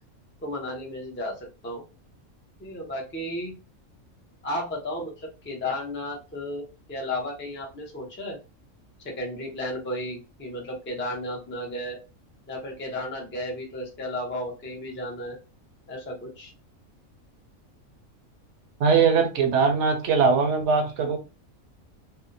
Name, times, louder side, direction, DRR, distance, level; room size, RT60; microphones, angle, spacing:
voice 1, 0.4-1.4 1.6-1.8 2.6-3.5 4.4-8.4 9.0-12.0 12.5-15.4 15.9-16.5, left 1 dB, 20° left, 0.3 m, -33 dB
voice 2, 18.8-21.2, right 5 dB, 65° right, 0.8 m, -21 dB
2.6 x 2.0 x 2.5 m
omnidirectional pair, 1.4 m